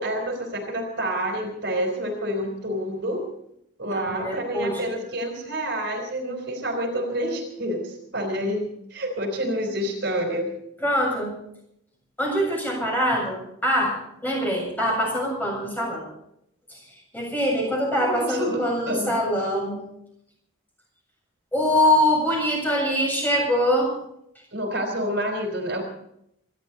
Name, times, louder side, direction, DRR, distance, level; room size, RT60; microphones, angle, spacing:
voice 1, 0.0-3.3 3.8-10.5 18.0-19.1 24.5-25.8, equal, 55° right, 3 dB, 4.3 m, -28 dB
voice 2, 3.9-4.9 10.8-11.3 12.2-14.0 14.2-16.0 16.7-16.8 17.1-19.8 21.5-23.9, equal, 10° left, -2 dB, 7.3 m, -23 dB
26.5 x 12.5 x 4.2 m, 0.75 s
head